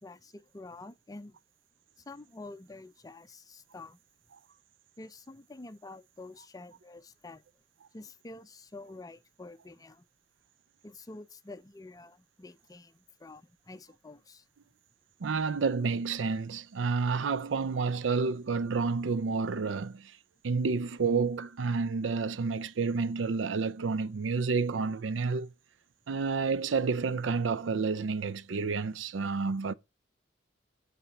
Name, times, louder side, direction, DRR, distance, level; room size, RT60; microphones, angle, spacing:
voice 1, 0.0-1.4 2.0-4.0 5.0-7.4 7.9-10.0 10.8-14.4, left 2 dB, 20° left, 0.5 m, -48 dB
voice 2, 15.2-20.1 20.4-25.5 26.1-29.7, right 4 dB, 85° right, 0.5 m, -30 dB
8.8 x 4.2 x 6.9 m
head